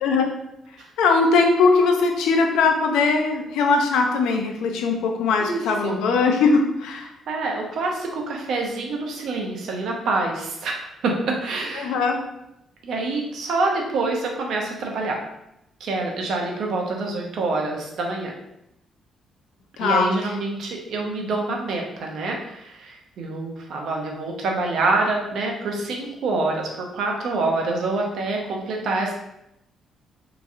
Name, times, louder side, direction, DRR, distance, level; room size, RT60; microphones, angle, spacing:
voice 1, 1.0-7.1 11.8-12.2 19.8-20.1, left 4 dB, 90° left, 3 dB, 0.4 m, -20 dB
voice 2, 5.4-6.0 7.3-11.9 12.8-15.2 15.8-18.3 19.8-29.1, right 3 dB, 70° right, 0 dB, 0.6 m, -26 dB
2.9 x 2.6 x 2.4 m, 0.83 s
cardioid pair, 90°, 0 cm